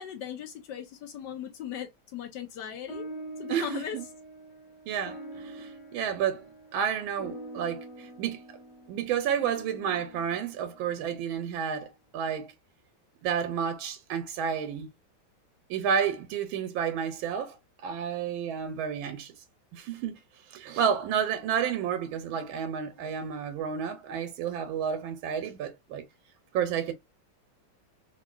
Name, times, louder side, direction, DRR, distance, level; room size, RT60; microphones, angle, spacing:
voice 1, 0.0-3.1 3.4-4.0, left 9 dB, 75° left, 1.1 m, -38 dB
sound 1, 2.9-11.6, right 1 dB, 50° left, 1.3 m, -45 dB
voice 2, 3.5-4.0 4.9-6.4 6.7-8.4 8.9-12.5 13.2-14.9 15.7-19.3 19.7-20.2 20.5-26.0 26.5-26.9, right 8 dB, 90° right, 1.4 m, -31 dB
3.5 x 2.7 x 2.3 m
omnidirectional pair, 2.2 m